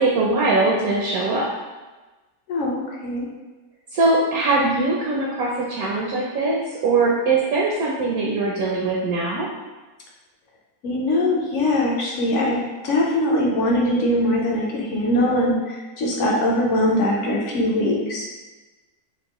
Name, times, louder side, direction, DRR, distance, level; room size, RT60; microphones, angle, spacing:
voice 1, 0.0-1.4 3.9-9.5, right 3 dB, 70° right, -3 dB, 1.0 m, -21 dB
voice 2, 2.5-3.3 10.8-18.3, left 1 dB, 60° left, -2 dB, 0.9 m, -22 dB
4.5 x 2.5 x 2.9 m, 1.2 s
omnidirectional pair, 1.7 m